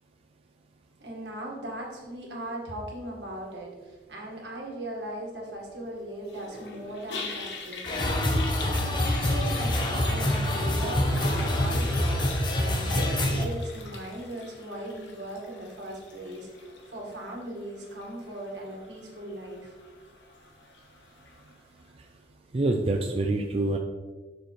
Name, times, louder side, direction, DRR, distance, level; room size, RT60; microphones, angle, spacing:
voice 1, 1.0-16.5 16.9-19.7, right 1 dB, 75° right, -2 dB, 1.8 m, -38 dB
Toilet flush, 6.3-21.5, left 3 dB, 80° left, 1.1 m, -41 dB
sound 1, 7.9-13.5, left 1 dB, 25° left, 0.8 m, -26 dB
voice 2, 22.5-23.8, right 2 dB, 35° right, 3 dB, 0.4 m, -26 dB
6.9 x 6.2 x 3.2 m, 1.4 s
head